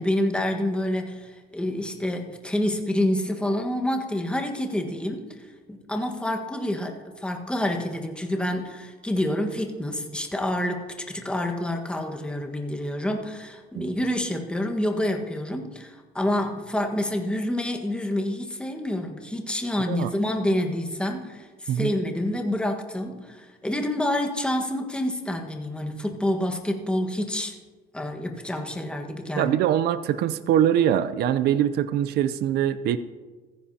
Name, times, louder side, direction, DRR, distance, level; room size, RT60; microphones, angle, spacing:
voice 1, 0.0-5.3 5.7-27.5 27.9-29.5, left 1 dB, 5° left, 2 dB, 1.5 m, -28 dB
voice 2, 29.4-33.0, right 10 dB, 75° right, 13 dB, 0.6 m, -23 dB
15.0 x 15.0 x 2.9 m, 1.4 s
cardioid pair, 110°, 17 cm